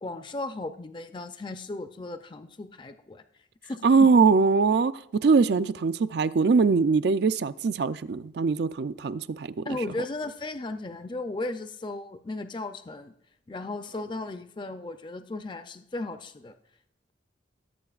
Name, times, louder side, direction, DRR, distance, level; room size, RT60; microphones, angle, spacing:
voice 1, 0.0-3.2 3.6-4.1 9.6-13.1 13.5-16.5, left 2 dB, 25° left, 0.4 m, -35 dB
voice 2, 3.8-4.9 5.2-9.6, right 4 dB, 60° right, 0.4 m, -22 dB
18.0 x 7.7 x 2.4 m
head